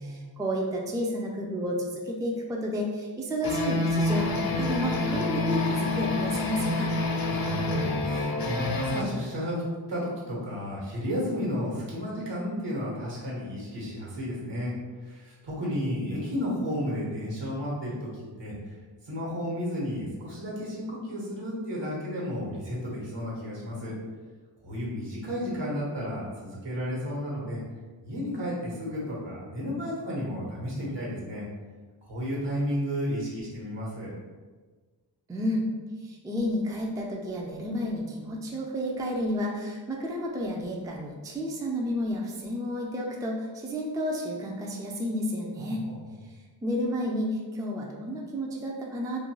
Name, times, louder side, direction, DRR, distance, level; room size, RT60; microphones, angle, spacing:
voice 1, 0.0-6.9 35.3-35.7 36.0-45.8 46.6-49.2, equal, 10° right, -1 dB, 0.3 m, -31 dB
sound 1, 3.4-9.0, left 2 dB, 50° left, 0.5 m, -27 dB
voice 2, 7.3-9.6 9.9-14.7 15.0-18.7 19.0-23.9 24.6-27.6 28.0-31.4 32.0-34.1 45.6-46.0, equal, 65° right, -5 dB, 1.2 m, -32 dB
2.5 x 2.2 x 2.9 m, 1.4 s
cardioid pair, 45°, 46 cm